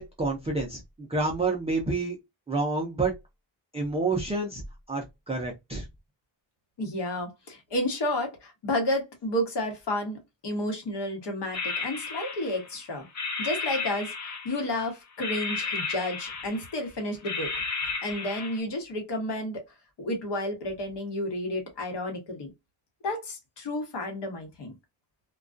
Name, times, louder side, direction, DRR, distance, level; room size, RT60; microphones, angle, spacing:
voice 1, 0.0-2.2 2.5-3.1 3.7-4.6 4.9-5.9, right 3 dB, 15° right, 0.3 m, -28 dB
voice 2, 6.8-13.1 13.4-14.1 14.4-17.5 18.0-19.6 20.0-22.5 23.0-24.7, left 1 dB, 55° left, 1.0 m, -31 dB
sound 1, 11.5-12.8 13.1-14.8 15.2-16.9 17.2-18.6, left 4 dB, 35° left, 0.6 m, -33 dB
2.3 x 2.2 x 2.4 m
wide cardioid pair, 145°, 48 cm